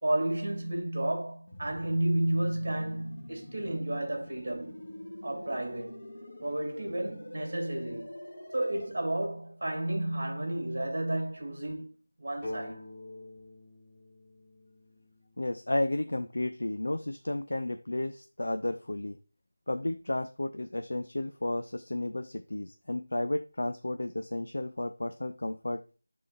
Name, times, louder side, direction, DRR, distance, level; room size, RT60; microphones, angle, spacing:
voice 1, 0.0-4.8 5.2-6.1 6.4-8.1 8.5-11.9 12.2-12.8, right 1 dB, 40° right, 2.4 m, -32 dB
sound 1, 1.5-8.9, left 1 dB, 35° left, 1.1 m, -46 dB
sound 2, 12.4-16.1, left 1 dB, 5° left, 1.7 m, -45 dB
voice 2, 15.4-19.2 19.7-25.8, left 1 dB, 70° left, 0.5 m, -33 dB
11.0 x 3.8 x 2.5 m
figure-of-eight pair, 180°, 0 cm